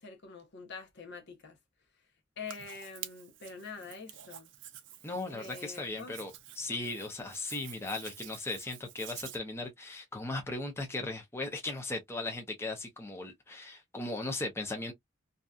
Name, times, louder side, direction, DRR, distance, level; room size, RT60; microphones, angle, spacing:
voice 1, 0.0-1.6 2.4-4.5 5.3-6.3, left 5 dB, 60° left, 0.8 m, -45 dB
Hands, 2.5-9.4, right 11 dB, 60° right, 0.5 m, -49 dB
voice 2, 5.0-14.9, left 2 dB, 10° left, 0.6 m, -37 dB
2.7 x 2.2 x 2.3 m
head